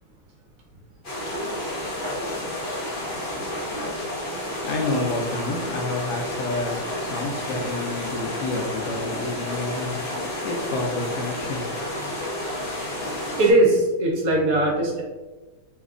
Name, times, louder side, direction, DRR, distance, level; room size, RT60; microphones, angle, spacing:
sound 1, 1.0-13.5, left 1 dB, 45° left, 0.9 m, -30 dB
voice 1, 4.6-11.7, left 2 dB, 75° left, 2 dB, 1.1 m, -29 dB
voice 2, 13.4-15.0, right 2 dB, 65° right, -1 dB, 1.0 m, -20 dB
3.2 x 2.2 x 3.6 m, 1.2 s
omnidirectional pair, 1.8 m